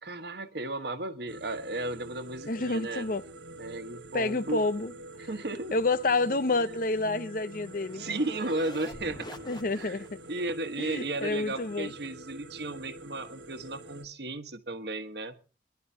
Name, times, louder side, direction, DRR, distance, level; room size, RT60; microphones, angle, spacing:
voice 1, 0.0-3.1 3.6-4.6 5.2-5.7 6.7-6.8 7.9-10.0 10.3-15.3, right 2 dB, 65° right, 1.3 m, -35 dB
sound 1, 1.3-14.0, right 1 dB, 90° right, 1.2 m, -46 dB
voice 2, 2.5-3.2 4.1-4.9 5.7-8.0 9.5-10.1 10.8-11.9, left 3 dB, 50° left, 0.7 m, -28 dB
sound 2, 6.7-10.3, left 1 dB, 25° left, 1.1 m, -47 dB
23.0 x 11.5 x 2.8 m
head